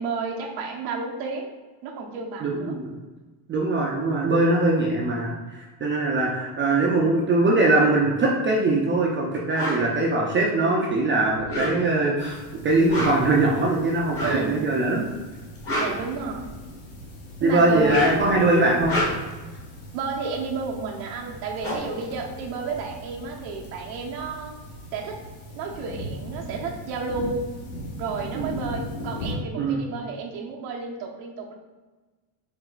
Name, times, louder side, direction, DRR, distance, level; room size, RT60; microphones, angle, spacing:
voice 1, 0.0-1.5 1.8-2.8 14.2-14.8 15.7-16.5 17.4-18.0 19.9-24.6 24.9-25.2 25.5-27.5 28.0-31.5, right 4 dB, 80° right, 0 dB, 0.9 m, -31 dB
voice 2, 2.4-2.9 3.5-15.1 17.4-19.0 28.3-28.5 29.6-29.8, right 2 dB, 25° right, -3 dB, 0.5 m, -22 dB
sound 1, 9.5-9.8 11.3-12.1 12.8-13.4 14.1-14.5 15.4-16.7 17.7-18.3 18.7-19.4 21.0-21.1 21.3-23.0, equal, 30° left, 1.0 m, -29 dB
sound 2, 12.2-29.3, equal, 60° left, 1.4 m, -39 dB
4.5 x 2.1 x 3.8 m, 1.2 s
supercardioid pair, 110°, 49 cm